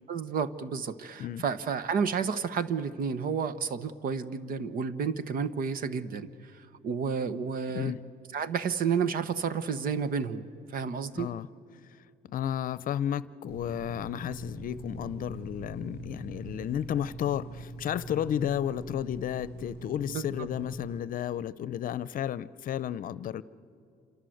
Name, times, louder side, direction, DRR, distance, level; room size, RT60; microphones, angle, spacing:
voice 1, 0.1-7.9 8.3-11.3 20.1-20.5, right 6 dB, 60° right, 13 dB, 1.3 m, -31 dB
voice 2, 11.2-11.5 12.3-23.4, left 10 dB, 60° left, 18 dB, 0.7 m, -32 dB
sound 1, 13.5-21.0, right 1 dB, 80° right, 2.0 m, -43 dB
28.0 x 26.5 x 7.9 m, 2.5 s
cardioid pair, 100°, 16 cm